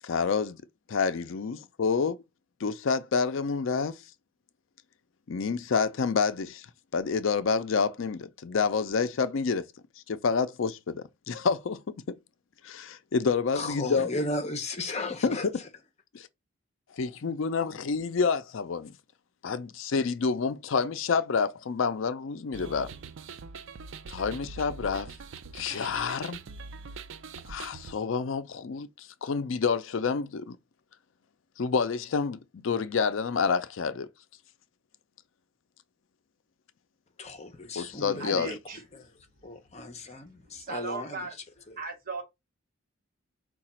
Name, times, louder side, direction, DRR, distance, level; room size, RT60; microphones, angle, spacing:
voice 1, 0.0-0.6 0.9-2.2 2.6-4.0 5.3-6.7 6.9-9.6 10.1-12.2 12.6-14.1 15.2-15.4 16.1-16.3 17.0-18.9 19.4-22.9 24.1-25.1 25.5-26.4 27.5-30.6 31.6-34.1 37.8-38.6, left 5 dB, 70° left, 0.4 m, -28 dB
voice 2, 13.5-15.7 37.2-38.6 38.9-39.1 39.4-41.8, left 2 dB, 30° left, 0.7 m, -35 dB
sound 1, 22.5-27.9, right 4 dB, 65° right, 0.4 m, -43 dB
voice 3, 38.2-38.8 39.8-39.9 40.5-41.3 41.8-42.2, right 3 dB, 45° right, 1.2 m, -37 dB
4.8 x 2.3 x 4.2 m
head